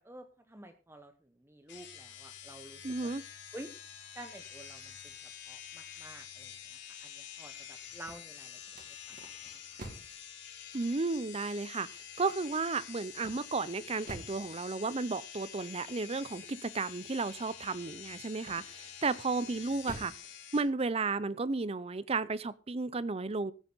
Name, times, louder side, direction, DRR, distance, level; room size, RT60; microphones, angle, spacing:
voice 1, 0.0-3.1 3.5-3.7 4.1-8.6 9.1-9.2, right 1 dB, 15° right, 7 dB, 0.9 m, -50 dB
sound 1, 1.7-20.6, left 9 dB, 60° left, 4.1 m, -48 dB
voice 2, 2.8-3.2 10.7-11.9 12.2-20.1 20.5-23.5, right 3 dB, 30° right, 18 dB, 0.6 m, -33 dB
sound 2, 7.9-10.2 13.2-14.5 18.4-18.9 19.5-20.3, right 1 dB, 50° right, 2.4 m, -47 dB
15.5 x 9.0 x 4.0 m, 0.34 s
head